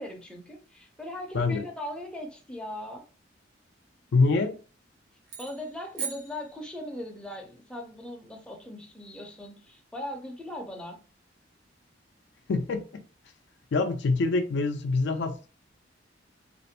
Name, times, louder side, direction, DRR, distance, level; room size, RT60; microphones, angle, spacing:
voice 1, 0.0-3.0 5.4-11.0, left 1 dB, 5° left, 0.5 m, -39 dB
voice 2, 4.1-4.6 12.5-13.0 13.7-15.5, left 3 dB, 65° left, 0.4 m, -25 dB
sound 1, 5.3-7.2, right 5 dB, 65° right, 0.8 m, -40 dB
2.5 x 2.0 x 2.7 m
head